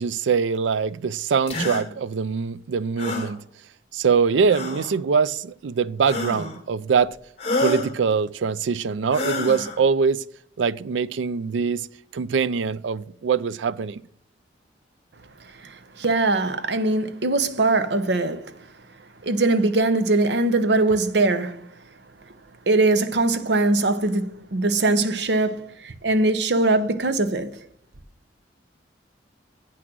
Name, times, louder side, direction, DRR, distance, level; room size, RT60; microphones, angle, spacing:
voice 1, 0.0-3.4 3.9-7.2 7.6-10.3 10.6-11.9 12.1-14.0, right 5 dB, 90° right, 0.4 m, -23 dB
sound 1, 1.5-1.8 3.0-3.3 4.5-4.9 6.1-6.6 7.4-7.9 9.1-9.8, left 2 dB, 30° left, 3.3 m, -27 dB
voice 2, 15.6-18.5 19.2-21.7 22.7-27.6, right 2 dB, 65° right, 0.8 m, -21 dB
9.1 x 6.2 x 6.1 m
head